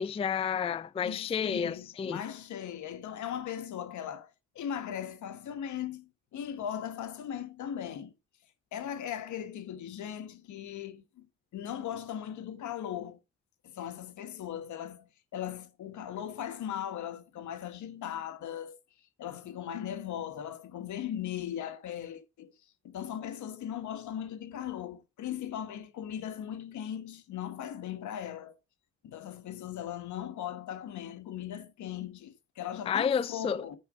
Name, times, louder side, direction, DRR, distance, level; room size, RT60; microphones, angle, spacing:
voice 1, 0.0-2.2 32.9-33.7, left 7 dB, 20° left, 0.4 m, -30 dB
voice 2, 1.0-4.3 4.5-8.1 8.7-11.3 11.5-13.2 13.6-15.0 15.3-18.8 19.2-22.5 22.8-28.6 29.0-33.8, left 10 dB, 75° left, 1.3 m, -38 dB
8.8 x 4.1 x 4.9 m
cardioid pair, 90°, 30 cm